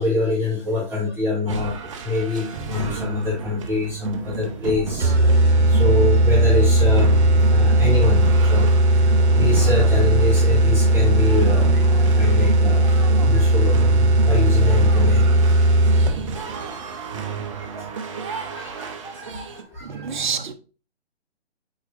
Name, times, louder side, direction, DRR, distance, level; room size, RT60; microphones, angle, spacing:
voice 1, 0.0-7.2 7.5-15.4 16.5-20.1, left 3 dB, 5° right, 2.7 m, -26 dB
sound 1, 1.5-19.6, right 5 dB, 30° right, 0.8 m, -32 dB
sound 2, 5.0-16.4, right 1 dB, 70° right, 1.2 m, -17 dB
voice 2, 19.8-20.5, right 6 dB, 45° right, 1.1 m, -27 dB
8.2 x 4.7 x 2.6 m
figure-of-eight pair, 150°, 34 cm